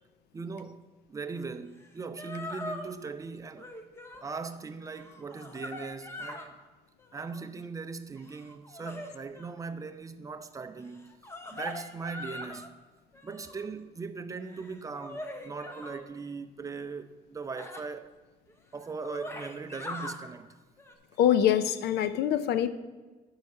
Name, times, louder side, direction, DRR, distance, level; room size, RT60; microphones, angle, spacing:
voice 1, 0.3-3.7 4.2-6.6 7.1-11.1 11.5-12.8 13.2-18.1 18.7-20.5, right 4 dB, 20° right, 0.6 m, -39 dB
sound 1, 1.8-1.9 2.2-2.9 3.5-4.3 4.8-6.5 7.0-7.5 8.2-9.5 10.9-12.7 13.1-13.7 14.4-16.0 17.6-17.8 18.5-18.6 18.8-20.2 20.8-20.9, left 1 dB, 15° left, 1.0 m, -42 dB
voice 2, 21.2-22.7, left 10 dB, 75° left, 0.6 m, -24 dB
9.1 x 4.8 x 6.6 m
cardioid pair, 110°, 17 cm